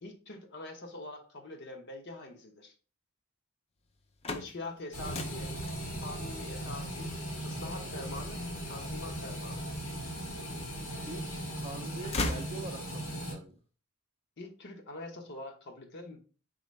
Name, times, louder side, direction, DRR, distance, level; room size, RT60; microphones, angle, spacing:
voice 1, 0.0-2.7 4.3-5.5 6.0-7.1 7.4-8.4 8.7-9.6 14.4-16.2, left 2 dB, 55° left, 0.9 m, -44 dB
sound 1, 3.9-9.9 10.4-11.3 11.6-13.2, left 2 dB, 30° left, 0.5 m, -40 dB
sound 2, 4.9-13.3, equal, 90° left, 2.2 m, -38 dB
voice 2, 11.1-13.6, right 3 dB, 30° right, 0.5 m, -44 dB
4.3 x 3.9 x 3.1 m
head